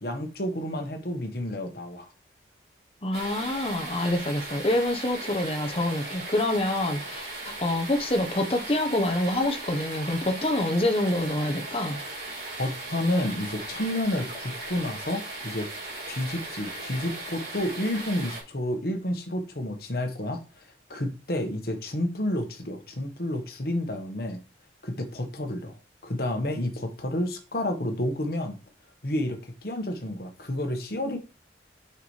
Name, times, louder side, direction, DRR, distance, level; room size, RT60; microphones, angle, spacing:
voice 1, 0.0-2.1 12.6-15.7 16.1-20.4 20.9-24.4 24.8-25.8 26.0-28.6 29.0-31.2, left 1 dB, 55° left, 1.2 m, -30 dB
voice 2, 3.0-7.3 7.6-12.0, left 1 dB, 30° left, 0.9 m, -26 dB
sound 1, 3.1-18.4, right 2 dB, 55° right, 4.1 m, -37 dB
6.7 x 5.8 x 3.2 m
head